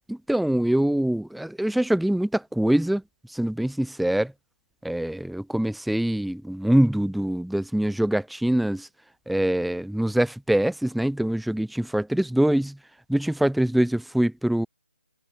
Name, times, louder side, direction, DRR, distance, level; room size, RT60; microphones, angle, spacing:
voice 1, 0.1-3.0 3.3-4.3 4.8-8.9 9.3-12.8 13.1-14.7, right 1 dB, ahead, 0.5 m, -24 dB
figure-of-eight pair, 145°, 6 cm